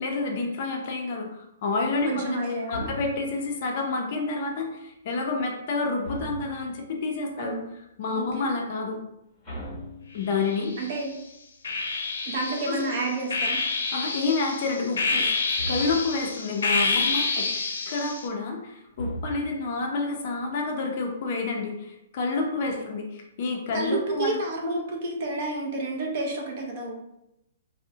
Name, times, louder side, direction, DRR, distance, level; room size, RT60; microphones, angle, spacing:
voice 1, 0.0-7.6 8.0-9.0 10.1-10.7 12.7-12.9 13.9-15.4 15.7-17.5 17.9-24.4, left 3 dB, 35° left, 1 dB, 0.4 m, -29 dB
voice 2, 2.0-2.9 7.4-7.7 8.1-8.5 10.8-11.2 12.3-13.6 22.8-22.9 23.7-27.0, right 2 dB, 35° right, 0 dB, 0.6 m, -30 dB
sound 1, 2.7-3.5 6.0-6.8 9.4-10.6 15.6-16.2 18.9-19.8, right 1 dB, 5° left, 1.0 m, -38 dB
sound 2, 10.3-11.0 11.6-18.3, left 3 dB, 85° left, 0.6 m, -28 dB
3.4 x 2.0 x 2.7 m, 0.86 s
hypercardioid pair, 175°, 0 cm